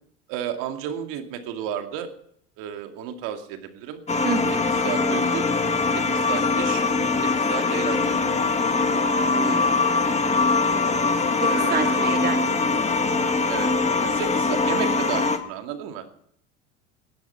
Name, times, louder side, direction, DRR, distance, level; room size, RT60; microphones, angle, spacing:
voice 1, 0.3-2.1 2.6-4.0 4.8-5.5 5.9-6.8 7.2-8.2 11.4-12.0 13.5-13.7 14.0-16.1, right 9 dB, 65° right, 6 dB, 2.3 m, -32 dB
sound 1, 4.1-15.4, left 3 dB, 20° left, 1.9 m, -22 dB
voice 2, 4.2-4.7 9.3-9.9 11.7-12.6, right 6 dB, 25° right, 9 dB, 1.1 m, -30 dB
18.5 x 11.0 x 5.7 m, 0.67 s
hypercardioid pair, 90°, 35 cm